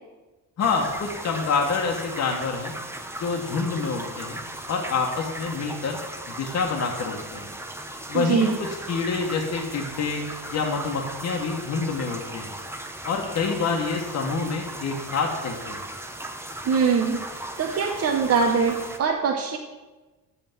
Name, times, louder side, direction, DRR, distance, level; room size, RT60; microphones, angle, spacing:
voice 1, 0.6-2.7 3.2-4.4 4.7-6.0 6.3-7.5 8.1-10.2 10.5-12.5 13.0-15.8, left 4 dB, 50° left, 0 dB, 1.3 m, -27 dB
sound 1, 0.6-19.0, right 1 dB, 5° right, 0.8 m, -37 dB
voice 2, 8.1-8.6 16.6-17.2 17.6-19.6, right 5 dB, 45° right, 2 dB, 0.9 m, -22 dB
7.1 x 5.6 x 7.4 m, 1.2 s
cardioid pair, 110°, 33 cm